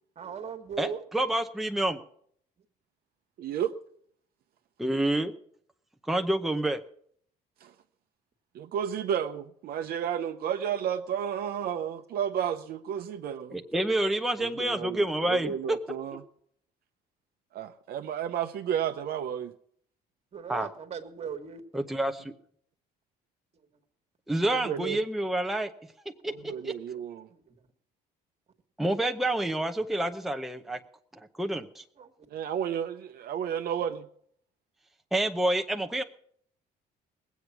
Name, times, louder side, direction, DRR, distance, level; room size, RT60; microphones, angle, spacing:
voice 1, 0.1-1.0 20.3-21.8 26.4-26.5 27.3-27.5 29.8-29.9 32.0-32.1, right 6 dB, 40° right, 1.7 m, -39 dB
voice 2, 0.8-2.0 4.8-5.3 6.1-6.8 13.5-15.8 20.5-20.7 21.7-22.3 24.3-25.7 26.2-26.3 26.6-26.7 28.8-30.8 31.4-31.8 35.1-36.0, right 1 dB, ahead, 0.7 m, -28 dB
voice 3, 3.4-3.7 7.6-7.7 8.5-13.6 14.4-16.2 17.5-19.5 24.5-25.0 26.5-27.3 32.3-34.0, right 9 dB, 65° right, 0.8 m, -32 dB
19.5 x 8.2 x 6.0 m
cardioid pair, 110°, 17 cm